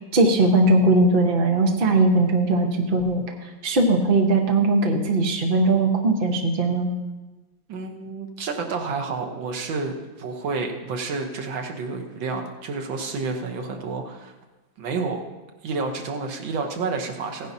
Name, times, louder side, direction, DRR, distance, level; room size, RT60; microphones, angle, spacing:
voice 1, 0.1-3.2 3.6-6.9, right 2 dB, 35° right, 2 dB, 1.1 m, -19 dB
voice 2, 7.7-14.3 14.8-15.2 15.6-17.5, right 4 dB, 80° right, 3 dB, 1.8 m, -30 dB
16.5 x 10.0 x 2.8 m, 1.1 s
omnidirectional pair, 2.1 m